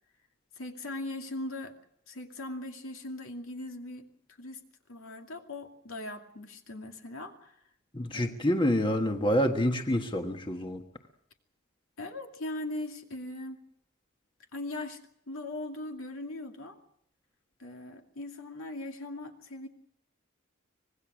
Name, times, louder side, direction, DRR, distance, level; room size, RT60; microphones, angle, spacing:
voice 1, 0.6-1.8 2.1-4.1 4.4-4.6 4.9-7.5 8.1-8.3 12.0-13.6 14.5-15.0 15.3-16.8 17.6-19.7, left 2 dB, 75° left, 3 dB, 2.5 m, -39 dB
voice 2, 7.9-10.8, equal, 25° left, 5 dB, 1.3 m, -27 dB
25.0 x 20.0 x 6.3 m, 0.71 s
head